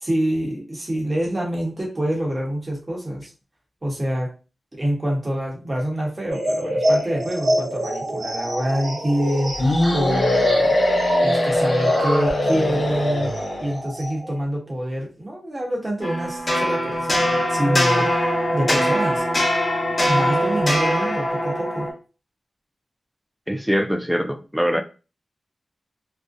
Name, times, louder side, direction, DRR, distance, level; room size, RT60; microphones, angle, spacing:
voice 1, 0.0-3.3 3.8-4.3 4.8-10.7 11.2-13.3 13.6-18.1 18.5-19.2 20.1-21.9, equal, 30° right, 0.9 m, -26 dB
sound 1, 6.3-14.4, equal, 80° right, 0.9 m, -27 dB
sound 2, 9.6-13.8, left 1 dB, 75° left, 0.7 m, -21 dB
sound 3, 16.0-21.9, equal, 35° left, 1.1 m, -22 dB
voice 2, 23.5-24.8, equal, ahead, 0.3 m, -23 dB
2.5 x 2.1 x 2.4 m
cardioid pair, 65°, 0 cm